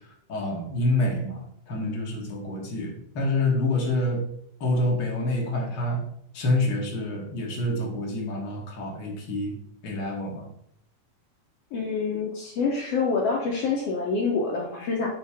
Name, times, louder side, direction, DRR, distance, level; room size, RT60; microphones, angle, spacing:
voice 1, 0.3-4.2 4.6-6.0 6.3-9.5 9.8-10.4, left 1 dB, 50° left, -1 dB, 1.4 m, -27 dB
voice 2, 11.7-15.1, left 4 dB, 70° left, -1 dB, 1.6 m, -26 dB
7.2 x 3.0 x 4.8 m, 0.71 s
omnidirectional pair, 3.6 m